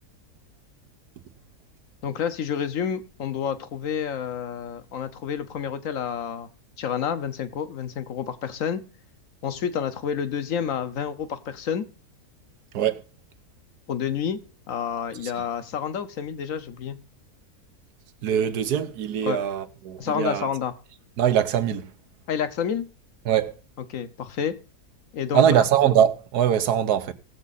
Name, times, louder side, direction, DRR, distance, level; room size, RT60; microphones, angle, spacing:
voice 1, 2.0-6.5 6.8-8.8 9.4-11.9 13.9-14.4 14.7-17.0 19.2-19.4 20.0-20.7 22.3-22.9 23.9-24.6 25.1-25.6, left 8 dB, 60° left, 1.2 m, -29 dB
voice 2, 18.2-20.5 21.2-21.9 23.2-23.5 25.3-27.1, right 9 dB, 90° right, 1.4 m, -22 dB
17.5 x 7.3 x 4.1 m
omnidirectional pair, 1.6 m